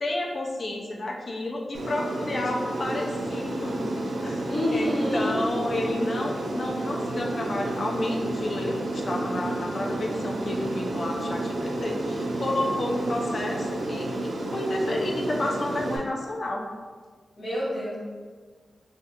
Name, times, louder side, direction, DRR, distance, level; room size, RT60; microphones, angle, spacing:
voice 1, 0.0-4.4 4.7-14.1 14.5-16.7, left 1 dB, 45° left, 0 dB, 0.4 m, -30 dB
Aircraft, 1.7-16.0, right 1 dB, 90° right, 0.4 m, -31 dB
voice 2, 4.5-5.4 17.4-18.0, equal, 65° left, -7 dB, 1.3 m, -27 dB
2.7 x 2.4 x 3.4 m, 1.5 s
wide cardioid pair, 130°, 0 cm